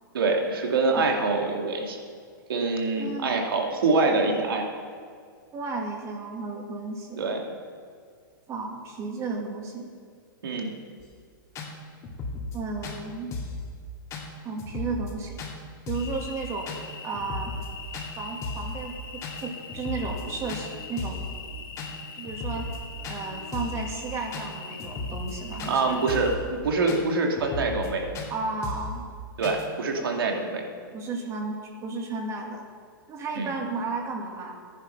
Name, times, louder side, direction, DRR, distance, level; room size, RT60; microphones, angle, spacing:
voice 1, 0.1-2.0 2.5-4.7 7.2-7.4 10.4-10.7 25.6-28.0 29.4-30.6 33.4-33.5, right 3 dB, 85° right, 2 dB, 2.5 m, -25 dB
voice 2, 2.9-3.4 5.5-7.3 8.5-9.9 12.5-13.3 14.4-15.4 15.9-16.8 17.0-17.5 18.1-21.3 22.2-22.7 23.1-26.1 28.3-29.1 30.9-32.7 33.1-34.6, right 3 dB, 25° right, 1 dB, 2.3 m, -33 dB
sound 1, 11.0-11.1 11.5-11.7 12.0-12.6 12.8-13.0 13.3-13.6 14.1-14.3 14.6-15.1 15.4-15.5 15.9-16.2 16.7-16.8 17.1-17.7 17.9-18.1 18.4-18.7 19.2-19.4 19.7-20.2 20.5-20.6 21.0-21.3 21.8-21.9 22.2-22.8 23.0-23.2 23.5-23.8 24.3-24.5 24.8-25.3 25.6-25.7 26.1-26.4 26.9-27.0 27.3-27.9 28.1-28.3 28.6-28.9 29.4-29.6, left 3 dB, 25° left, 2.4 m, -35 dB
Cricket, 15.9-26.3, left 5 dB, 80° left, 2.3 m, -42 dB
14.5 x 10.5 x 5.7 m, 2.1 s
hypercardioid pair, 135°, 12 cm